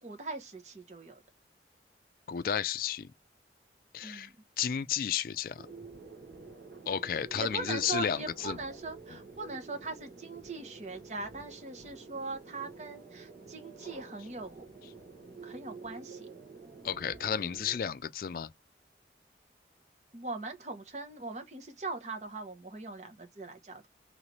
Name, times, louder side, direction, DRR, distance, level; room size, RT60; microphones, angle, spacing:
voice 1, 0.0-1.2 4.0-4.3 7.3-14.7 15.4-16.3 20.1-23.9, right 3 dB, 40° right, 0.9 m, -41 dB
voice 2, 2.3-3.1 3.9-4.3 4.6-5.6 6.9-8.2 8.4-8.6 16.8-18.5, left 8 dB, 50° left, 0.3 m, -32 dB
sound 1, 5.6-17.8, right 3 dB, 70° right, 1.4 m, -49 dB
3.2 x 3.2 x 3.9 m
head